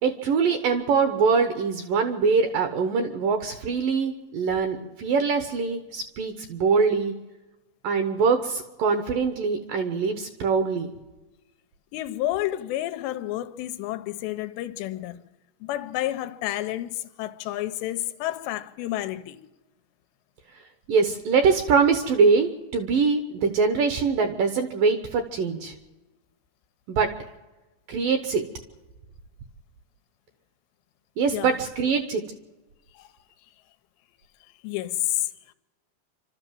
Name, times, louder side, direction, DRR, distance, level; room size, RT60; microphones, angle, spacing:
voice 1, 0.0-7.1 7.8-10.9 20.9-25.7 26.9-27.1 27.9-28.4 31.2-32.2, right 5 dB, 65° right, 2.3 m, -23 dB
voice 2, 11.9-15.2 15.6-19.4 31.3-31.5 33.0-33.1 34.6-35.2, left 14 dB, 90° left, 3.0 m, -30 dB
27.5 x 13.0 x 7.7 m
omnidirectional pair, 4.9 m